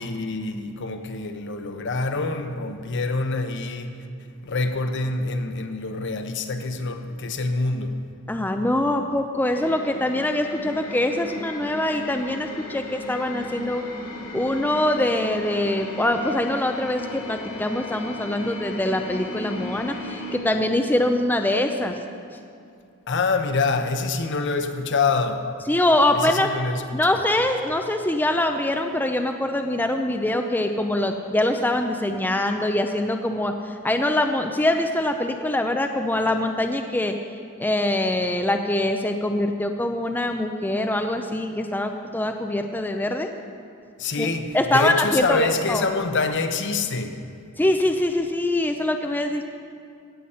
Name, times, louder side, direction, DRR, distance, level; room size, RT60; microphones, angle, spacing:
voice 1, 0.0-4.0 4.4-8.0 23.1-25.5 26.1-27.0 44.0-47.2, left 3 dB, 55° left, 0.8 m, -26 dB
voice 2, 8.3-13.8 14.2-22.0 25.7-26.5 26.9-37.1 37.6-43.3 44.2-44.3 44.5-45.8 47.6-49.5, left 1 dB, 10° left, 0.5 m, -23 dB
sound 1, 9.5-20.4, left 1 dB, 70° left, 2.7 m, -36 dB
17.0 x 8.2 x 5.6 m
head